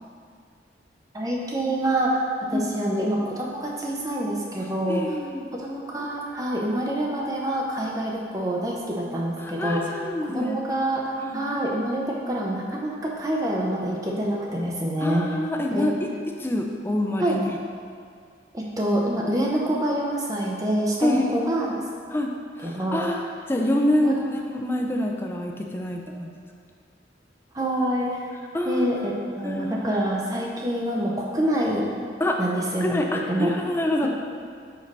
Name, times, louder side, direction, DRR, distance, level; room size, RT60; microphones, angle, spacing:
voice 1, 1.1-2.2 2.5-5.0 5.5-9.9 10.3-15.3 15.7-15.9 17.2-17.3 18.5-21.7 22.6-23.1 24.0-24.2 27.5-28.2 28.6-31.9 32.4-33.0 33.3-33.5, right 1 dB, 20° right, -2 dB, 0.7 m, -26 dB
voice 2, 4.9-5.5 9.4-10.6 11.2-11.4 15.0-15.9 16.4-17.6 21.0-21.4 22.1-22.3 22.6-24.2 24.5-26.3 28.5-28.9 29.4-29.8 32.2-32.4 32.8-34.1, left 1 dB, 10° left, 1 dB, 0.4 m, -26 dB
5.2 x 4.5 x 4.1 m, 2.2 s
head